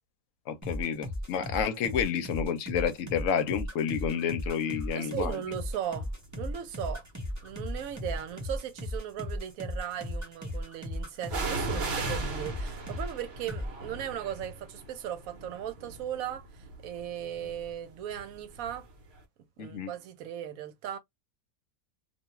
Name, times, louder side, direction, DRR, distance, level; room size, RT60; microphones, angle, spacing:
voice 1, 0.5-5.4 19.6-19.9, left 7 dB, 70° left, 0.9 m, -30 dB
sound 1, 0.6-13.2 13.5-13.7, left 1 dB, 15° right, 0.7 m, -36 dB
voice 2, 4.9-6.1 6.4-7.1 7.4-18.9 19.6-21.0, right 10 dB, 80° right, 1.0 m, -37 dB
sound 2, 6.3-6.7 7.4-8.4 11.3-18.9 19.2-19.3, right 3 dB, 55° right, 0.9 m, -38 dB
2.4 x 2.2 x 2.9 m
omnidirectional pair, 1.5 m